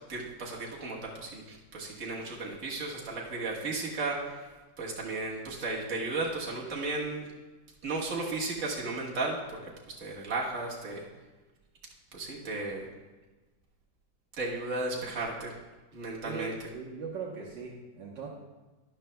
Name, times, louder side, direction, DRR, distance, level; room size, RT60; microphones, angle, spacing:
voice 1, 0.1-4.5 4.8-7.3 7.8-9.6 9.9-11.0 12.1-12.9 14.4-15.6 15.9-16.5, right 3 dB, 40° right, -3 dB, 1.8 m, -34 dB
voice 2, 16.2-18.3, right 6 dB, 65° right, -3 dB, 1.7 m, -39 dB
12.0 x 10.5 x 2.2 m, 1.2 s
omnidirectional pair, 2.1 m